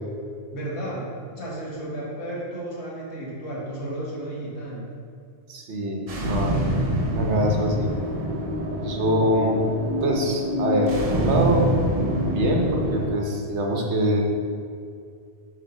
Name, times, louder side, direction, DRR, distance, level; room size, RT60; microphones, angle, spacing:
voice 1, 0.5-4.9, right 1 dB, 80° left, -5 dB, 2.0 m, -33 dB
voice 2, 5.5-6.5 7.1-7.9 8.8-9.6 10.0-11.6 12.3-14.2, right 1 dB, 85° right, 0 dB, 1.3 m, -24 dB
sound 1, 6.1-13.1, equal, 40° right, 0.7 m, -26 dB
7.1 x 3.9 x 5.4 m, 2.3 s
omnidirectional pair, 1.1 m